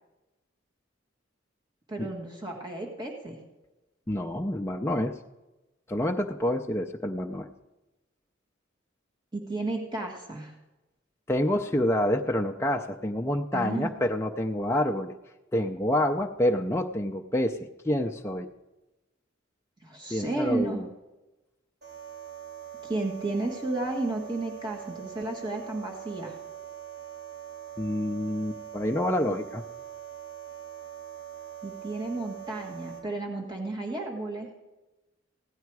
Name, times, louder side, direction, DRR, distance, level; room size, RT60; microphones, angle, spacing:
voice 1, 1.9-3.4 9.3-10.5 13.5-13.9 19.8-20.8 22.8-26.4 31.6-34.5, right 2 dB, 25° right, 0 dB, 1.6 m, -32 dB
voice 2, 4.1-5.2 5.9-7.5 11.3-15.1 15.5-17.6 17.8-18.5 20.1-20.9 27.8-29.6, left 1 dB, 15° left, 2 dB, 0.5 m, -27 dB
sound 1, 21.8-33.0, right 10 dB, 55° right, 5.0 m, -43 dB
16.5 x 10.5 x 4.7 m, 1.0 s
head